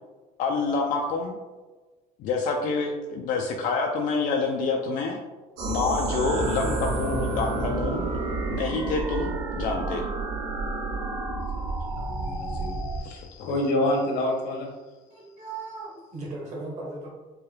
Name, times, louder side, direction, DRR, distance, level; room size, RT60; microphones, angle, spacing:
voice 1, 0.4-1.4 2.2-5.2 5.6-8.1 8.5-10.0 13.4-13.6, left 4 dB, 45° left, 1 dB, 0.4 m, -27 dB
sound 1, 5.6-13.0, right 3 dB, 90° right, 1.0 m, -30 dB
sound 2, 6.2-9.2, right 1 dB, 60° right, 1.3 m, -37 dB
voice 2, 11.5-14.7, left 1 dB, 70° left, 0 dB, 1.1 m, -28 dB
voice 3, 15.1-17.1, right 3 dB, 40° right, -3 dB, 1.1 m, -37 dB
4.6 x 2.2 x 3.2 m, 1.2 s
cardioid pair, 175°, 18 cm